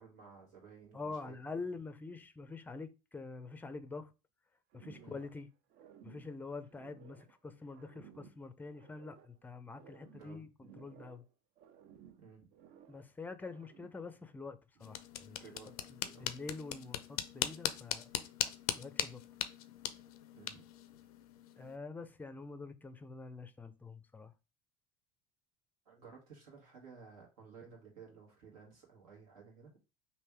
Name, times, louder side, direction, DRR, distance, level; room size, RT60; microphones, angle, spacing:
voice 1, 0.0-1.4 5.0-5.2 10.1-10.4 12.2-12.5 15.4-16.3 20.3-20.6 25.8-29.7, right 5 dB, 80° right, 1.5 m, -55 dB
voice 2, 0.9-4.1 4.7-5.5 6.0-11.2 12.9-15.4 15.9-18.1 18.8-19.2 21.6-24.3, left 3 dB, 10° left, 0.4 m, -46 dB
sound 1, 4.7-5.4 5.7-7.4 7.7-9.4 9.7-11.3 11.6-13.1 13.4-14.1, right 9 dB, 55° right, 0.5 m, -59 dB
sound 2, 14.8-21.8, left 11 dB, 80° left, 0.4 m, -40 dB
3.3 x 2.6 x 3.3 m
hypercardioid pair, 80°, 19 cm